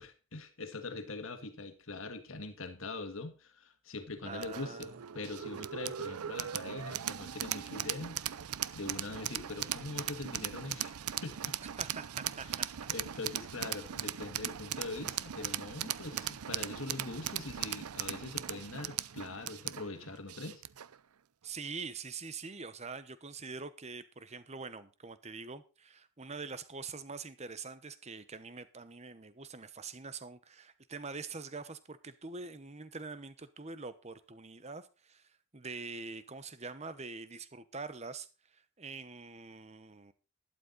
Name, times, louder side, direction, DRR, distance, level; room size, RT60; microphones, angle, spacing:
voice 1, 0.0-8.2 8.7-10.9 11.2-11.6 12.9-20.6, left 3 dB, 65° left, 1.7 m, -42 dB
voice 2, 4.2-5.0 11.8-12.7 21.4-40.1, right 4 dB, 30° right, 1.0 m, -44 dB
sound 1, 4.4-20.9, right 11 dB, 90° right, 0.6 m, -39 dB
12.0 x 11.5 x 4.0 m
head